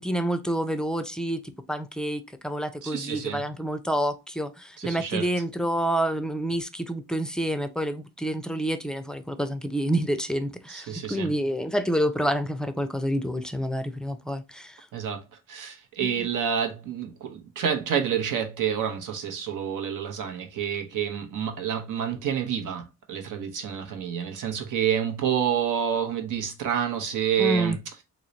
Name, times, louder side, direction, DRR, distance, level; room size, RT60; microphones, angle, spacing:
voice 1, 0.0-1.4 1.7-14.9 16.0-16.3 27.4-27.8, right 1 dB, ahead, 0.4 m, -28 dB
voice 2, 2.8-3.5 4.8-5.3 10.7-11.3 14.9-27.8, right 8 dB, 80° right, 0.8 m, -28 dB
3.0 x 2.1 x 3.8 m
cardioid pair, 75°, 31 cm